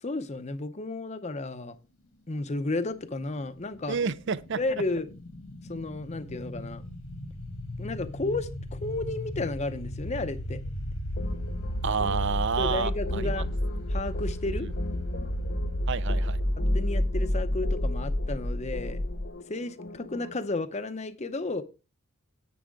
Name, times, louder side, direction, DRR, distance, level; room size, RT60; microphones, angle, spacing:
voice 1, 0.0-1.8 2.3-4.0 4.6-5.1 5.7-6.8 7.8-10.6 12.6-13.5 13.9-14.7 16.6-19.0 19.5-21.6, left 2 dB, 30° left, 0.7 m, -33 dB
sound 1, 3.5-19.3, left 1 dB, 80° left, 1.8 m, -31 dB
voice 2, 3.9-4.6 11.8-13.3 14.6-14.7 15.9-16.4, right 6 dB, 55° right, 0.5 m, -29 dB
sound 2, 11.2-20.4, left 2 dB, 50° left, 1.0 m, -43 dB
10.0 x 8.5 x 3.6 m
head